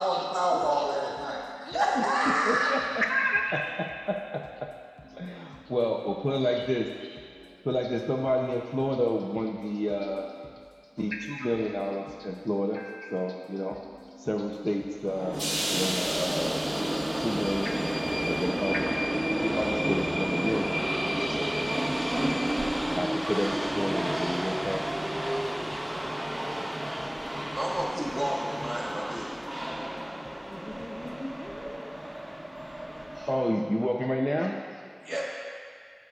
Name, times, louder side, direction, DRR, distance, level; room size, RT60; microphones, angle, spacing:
voice 1, 0.0-1.4 1.7-2.7 27.6-29.4 35.0-35.2, equal, 55° right, -4 dB, 1.7 m, -28 dB
voice 2, 0.5-1.2 1.6-2.9 30.4-32.0, left 1 dB, 55° left, 2 dB, 0.7 m, -40 dB
voice 3, 1.2-4.7 5.0-5.3 5.7-10.6 11.0-17.8 18.1-21.6 22.4-25.4 27.0-27.6 29.5-29.9 30.1-30.3 31.8-31.9 32.9-35.1, equal, 15° left, 0 dB, 0.6 m, -31 dB
sound 1, 15.0-33.3, right 1 dB, 80° right, 1.5 m, -31 dB
13.0 x 7.8 x 2.4 m, 2.2 s
wide cardioid pair, 40°, 0 cm